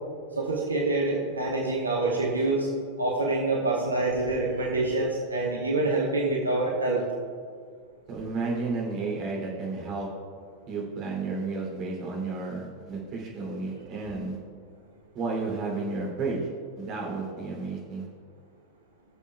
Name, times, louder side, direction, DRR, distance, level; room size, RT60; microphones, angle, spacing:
voice 1, 0.4-2.7 3.0-7.0, right 2 dB, 75° right, -2 dB, 1.2 m, -26 dB
voice 2, 8.1-10.1 10.7-14.4 15.1-16.4 16.8-18.1, right 3 dB, 35° right, -3 dB, 2.8 m, -32 dB
21.0 x 7.1 x 2.3 m, 2.1 s
figure-of-eight pair, 90°, 0 cm